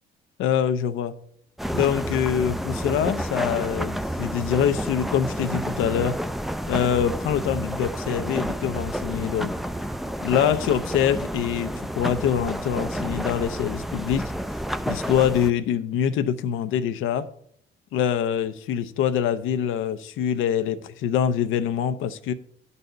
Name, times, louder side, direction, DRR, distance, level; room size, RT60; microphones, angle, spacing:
voice 1, 0.4-1.1 1.7-6.2 6.7-9.6 10.2-14.3 14.9-17.3 17.9-22.3, left 9 dB, 90° left, 0.6 m, -24 dB
sound 1, 1.6-15.5, equal, ahead, 0.4 m, -30 dB
10.5 x 4.1 x 6.6 m
cardioid pair, 90°, 20 cm